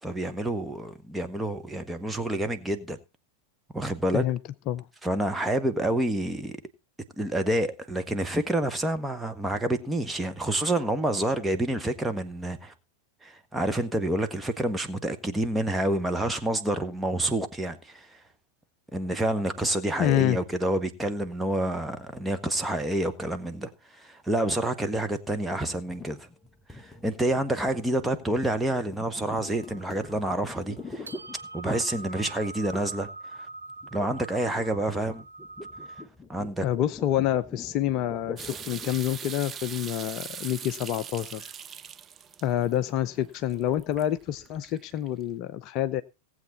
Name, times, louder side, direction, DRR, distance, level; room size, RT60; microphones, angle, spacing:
voice 1, 0.0-3.0 3.7-4.2 5.0-6.6 7.2-12.7 13.2-18.2 18.9-26.3 26.7-31.1 31.5-33.5 33.9-35.2 36.3-36.6, right 1 dB, 5° right, 1.5 m, -28 dB
voice 2, 20.0-20.4 36.6-41.5 42.4-46.0, left 12 dB, 40° left, 0.7 m, -27 dB
sound 1, 25.6-31.9 32.7-33.1 33.4-39.1, left 3 dB, 15° left, 1.0 m, -44 dB
sound 2, 29.4-36.1, right 3 dB, 75° right, 0.7 m, -44 dB
sound 3, 38.4-45.2, right 8 dB, 25° right, 0.6 m, -42 dB
18.5 x 8.0 x 4.1 m
figure-of-eight pair, 90°, 0 cm